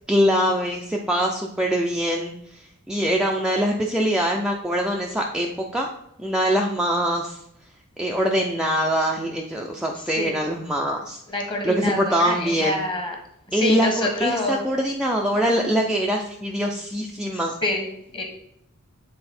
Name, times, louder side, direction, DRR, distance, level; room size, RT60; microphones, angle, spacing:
voice 1, 0.1-5.9 6.2-7.4 8.0-11.2 11.6-12.8 13.5-17.6, equal, 5° right, -1 dB, 0.4 m, -23 dB
voice 2, 9.9-10.4 11.3-13.1 13.5-14.6 17.6-17.9 18.1-18.2, left 2 dB, 25° left, 2 dB, 1.4 m, -27 dB
7.8 x 4.1 x 4.3 m, 0.76 s
head